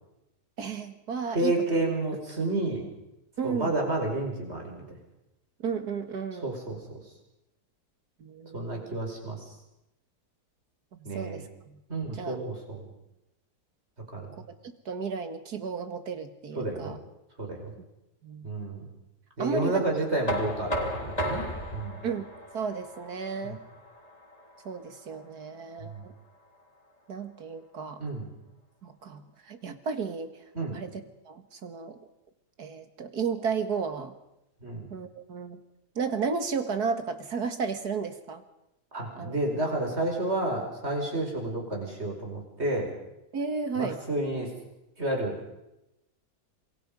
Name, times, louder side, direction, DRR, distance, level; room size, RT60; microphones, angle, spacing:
voice 1, 0.6-1.5 3.4-3.7 5.6-6.5 8.2-8.9 11.0-11.8 12.1-12.4 14.9-17.0 18.2-18.5 19.4-19.8 22.0-22.3 22.5-23.6 24.7-26.1 27.1-28.0 28.8-30.3 30.7-30.9 31.3-32.0 32.6-34.1 34.9-35.6 36.0-38.4 39.2-39.4 43.3-44.0, right 5 dB, 70° right, 8 dB, 2.4 m, -33 dB
voice 2, 1.3-2.9 3.4-4.8 6.4-6.8 8.5-9.4 11.1-11.5 11.9-12.9 14.1-14.4 16.6-17.0 17.4-17.7 18.4-18.9 19.4-22.1 23.4-23.6 25.8-26.0 28.0-28.3 30.5-30.8 34.6-34.9 38.9-42.9 43.7-44.5 45.0-45.3, right 2 dB, 40° right, 1 dB, 5.6 m, -30 dB
Knock, 20.3-26.1, equal, 20° left, 3.2 m, -35 dB
27.5 x 22.0 x 5.4 m, 0.90 s
omnidirectional pair, 1.8 m